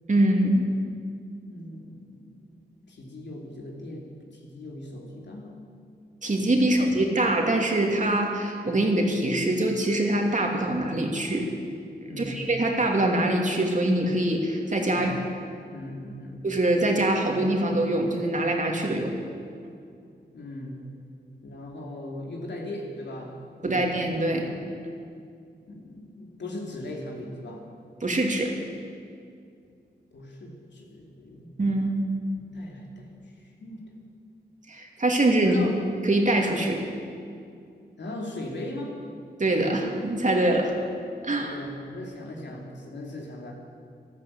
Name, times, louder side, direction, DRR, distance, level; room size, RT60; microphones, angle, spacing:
voice 1, 0.1-0.6 6.2-11.5 12.1-15.1 16.4-19.1 23.6-24.5 28.0-28.5 31.6-31.9 34.7-35.6 36.0-36.8 39.4-40.8 41.2-41.5, right 1 dB, 45° right, 1 dB, 2.7 m, -24 dB
voice 2, 1.5-2.5 2.9-5.6 6.6-6.9 12.0-12.4 14.9-15.2 15.7-16.4 20.3-20.9 21.4-23.9 25.7-27.7 30.1-31.5 32.4-33.8 35.4-35.8 36.6-36.7 38.0-39.0 41.4-43.5, left 1 dB, 80° left, -1 dB, 2.8 m, -39 dB
12.5 x 12.5 x 8.6 m, 2.4 s
cardioid pair, 55°, 18 cm